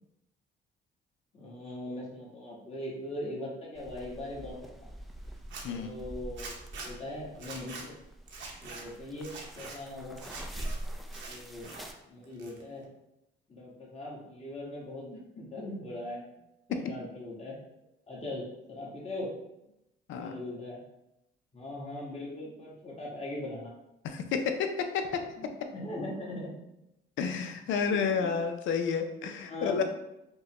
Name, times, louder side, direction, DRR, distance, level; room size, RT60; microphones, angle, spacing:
voice 1, 1.3-4.9 5.7-8.0 8.6-10.2 11.3-11.7 12.1-12.9 13.5-16.2 16.7-17.5 18.1-19.3 20.1-20.8 21.5-23.7 25.4-26.6 28.1-28.3 29.4-29.8, left 1 dB, 30° left, -4 dB, 1.4 m, -40 dB
sound 1, 3.7-11.9, right 1 dB, ahead, 0.4 m, -44 dB
Zipper (clothing), 5.4-5.6 6.4-6.9 7.4-7.8 8.3-8.8 9.2-9.8 10.2-10.8 11.1-11.9 12.2-12.8, right 4 dB, 70° right, 0.9 m, -44 dB
voice 2, 24.0-25.2 27.2-29.8, left 6 dB, 75° left, 6 dB, 0.5 m, -30 dB
5.3 x 2.2 x 2.9 m, 0.87 s
cardioid pair, 90°, 20 cm